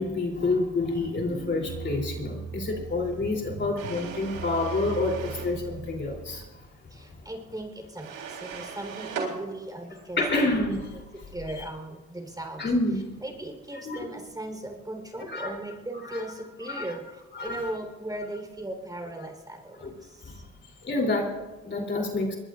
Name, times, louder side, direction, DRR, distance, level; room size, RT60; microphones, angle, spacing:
voice 1, 0.0-6.4 10.2-10.9 12.6-13.0 13.8-14.1 15.3-15.5 16.1-16.2 16.7-16.9 17.3-17.7 19.8-19.9 20.3-20.4 20.8-22.4, left 2 dB, 35° left, 1 dB, 3.3 m, -28 dB
sound 1, 1.2-6.5, right 5 dB, 50° right, 1.8 m, -39 dB
sound 2, 3.8-5.5 8.0-9.3, right 6 dB, 80° right, 3.7 m, -38 dB
voice 2, 6.9-10.8 11.3-12.6 13.2-20.4, right 1 dB, 10° right, 3 dB, 3.9 m, -38 dB
22.0 x 20.5 x 2.5 m, 1.2 s
supercardioid pair, 85°, 32 cm